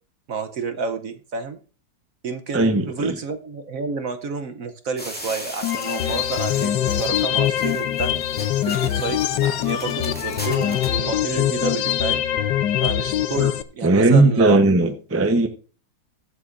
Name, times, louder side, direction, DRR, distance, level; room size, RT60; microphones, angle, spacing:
voice 1, 0.3-1.6 2.2-8.1 8.7-12.2 12.8-14.6, right 5 dB, 60° right, 9 dB, 1.0 m, -30 dB
voice 2, 2.5-3.1 13.8-15.5, right 2 dB, 15° right, 7 dB, 0.5 m, -17 dB
sound 1, 5.0-11.0, equal, 5° left, 2.1 m, -38 dB
sound 2, 5.6-13.6, left 11 dB, 75° left, 1.3 m, -23 dB
21.0 x 8.1 x 2.5 m, 0.38 s
omnidirectional pair, 2.0 m